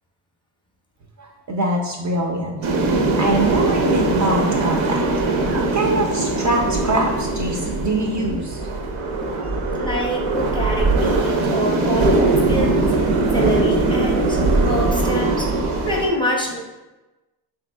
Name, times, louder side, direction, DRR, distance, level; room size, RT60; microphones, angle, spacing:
voice 1, 1.5-2.6 2.9-5.0 5.5-8.6, right 2 dB, 40° right, 1 dB, 0.4 m, -23 dB
sound 1, 2.6-16.1, right 2 dB, 85° right, 0.6 m, -20 dB
voice 2, 9.7-12.9 13.3-16.6, equal, 10° left, -2 dB, 0.5 m, -26 dB
3.5 x 2.6 x 2.2 m, 1.1 s
cardioid pair, 75°, 47 cm